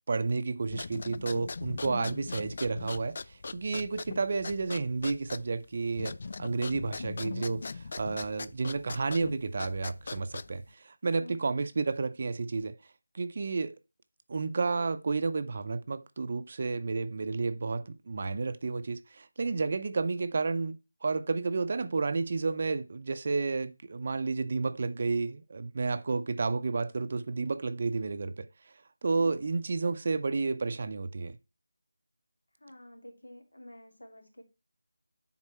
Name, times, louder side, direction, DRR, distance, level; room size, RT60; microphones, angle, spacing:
voice 1, 0.1-12.8 13.1-13.8 14.3-31.4, right 4 dB, 40° right, 0.6 m, -31 dB
sound 1, 0.6-10.7, left 4 dB, 45° left, 0.4 m, -40 dB
voice 2, 11.2-11.6 29.1-29.7 32.6-34.4, left 1 dB, 80° left, 2.8 m, -50 dB
9.8 x 4.1 x 4.2 m
figure-of-eight pair, 165°, 0 cm